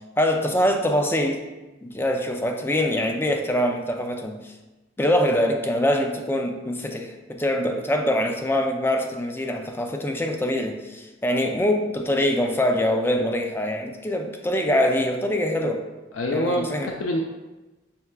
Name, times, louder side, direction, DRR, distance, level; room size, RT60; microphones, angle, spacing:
voice 1, 0.2-1.4 1.8-4.5 5.0-15.8 16.3-16.9, left 1 dB, 10° left, 3 dB, 0.3 m, -24 dB
voice 2, 16.1-17.2, left 1 dB, 90° left, 1 dB, 0.4 m, -25 dB
5.7 x 3.1 x 2.2 m, 1.1 s
head